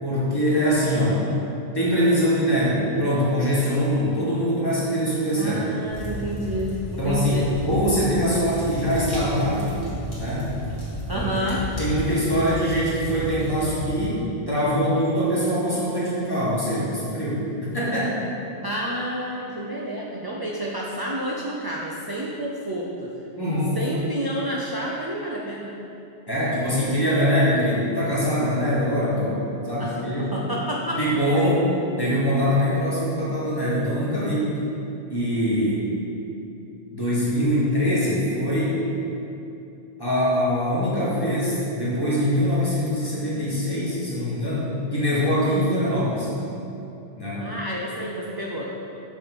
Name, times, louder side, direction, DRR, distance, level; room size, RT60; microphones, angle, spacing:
voice 1, 0.0-1.2 1.7-5.6 7.0-9.7 10.2-10.5 11.1-18.2 23.3-23.8 26.3-30.3 31.0-31.6 32.0-34.6 35.1-35.8 36.9-38.8 40.0-46.3 47.2-47.5, equal, 20° left, -8 dB, 1.5 m, -23 dB
voice 2, 5.4-7.5 11.1-11.6 18.6-23.1 23.7-25.8 29.8-31.0 31.3-31.6 47.4-48.7, equal, 35° right, -3 dB, 0.3 m, -29 dB
sound 1, 5.9-13.9, equal, 45° left, 1.7 m, -33 dB
6.4 x 3.4 x 6.0 m, 2.8 s
omnidirectional pair, 1.1 m